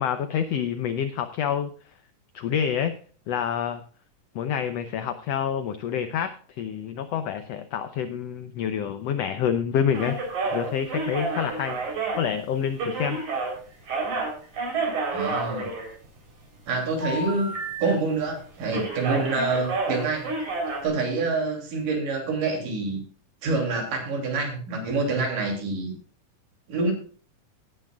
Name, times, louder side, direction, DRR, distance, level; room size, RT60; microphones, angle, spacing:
voice 1, 0.0-1.7 2.3-2.9 3.3-3.8 4.3-6.3 6.6-10.1 10.5-11.8 12.2-13.2, left 8 dB, 70° left, 10 dB, 1.6 m, -27 dB
sound 1, 9.9-13.5 13.8-16.3 17.0-17.8 18.1-18.3 18.7-20.9, right 3 dB, 60° right, 5.3 m, -30 dB
voice 2, 15.1-15.7 16.7-17.5 17.8-20.3 20.8-23.0 23.4-25.9 26.7-26.9, right 3 dB, 80° right, 2 dB, 4.6 m, -26 dB
18.5 x 10.0 x 2.4 m, 0.42 s
omnidirectional pair, 3.7 m